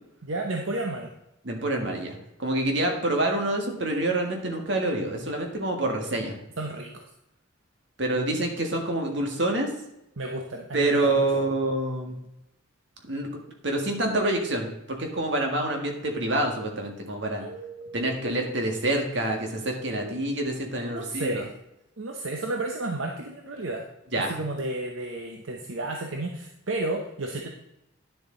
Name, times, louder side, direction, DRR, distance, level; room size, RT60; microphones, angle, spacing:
voice 1, 0.2-1.1 6.6-7.1 10.2-11.3 17.4-18.2 19.9-20.1 20.8-21.5 22.0-23.9 24.2-27.5, right 2 dB, 80° right, 2 dB, 0.9 m, -32 dB
voice 2, 1.5-6.4 8.0-9.7 10.7-12.2 13.1-13.3 13.6-17.5 17.9-21.4 24.1-24.4, right 1 dB, 60° right, 2 dB, 1.8 m, -27 dB
10.5 x 7.0 x 3.9 m, 0.85 s
head